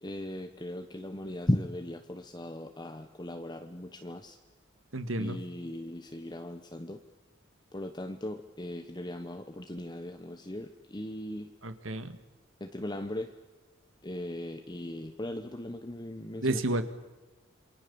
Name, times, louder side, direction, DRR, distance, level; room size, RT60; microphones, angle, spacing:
voice 1, 0.0-4.4 5.2-7.0 7.7-11.5 12.6-13.3 14.0-16.6, left 1 dB, 20° left, 6 dB, 1.1 m, -37 dB
voice 2, 4.9-5.4 11.6-12.2 16.4-16.8, right 2 dB, 80° right, 10 dB, 2.0 m, -31 dB
28.0 x 23.5 x 7.1 m, 1.1 s
head